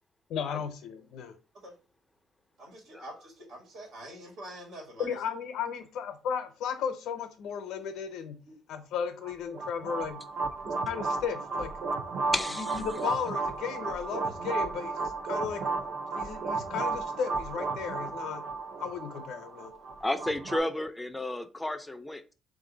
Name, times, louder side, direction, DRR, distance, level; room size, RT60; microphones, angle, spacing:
voice 1, 0.3-1.4 5.0-8.4 8.7-10.2 10.6-11.7 12.6-15.7 16.2-18.5 18.8-19.7, left 7 dB, 75° left, 9 dB, 0.7 m, -35 dB
voice 2, 2.6-5.2 8.4-8.6, right 1 dB, 90° right, -1 dB, 1.6 m, -45 dB
sound 1, 9.2-20.6, right 3 dB, 55° right, 0.5 m, -34 dB
voice 3, 12.3-13.1 20.0-22.3, left 1 dB, 10° left, 9 dB, 0.4 m, -33 dB
3.5 x 2.6 x 3.8 m, 0.32 s
cardioid pair, 120°, 0 cm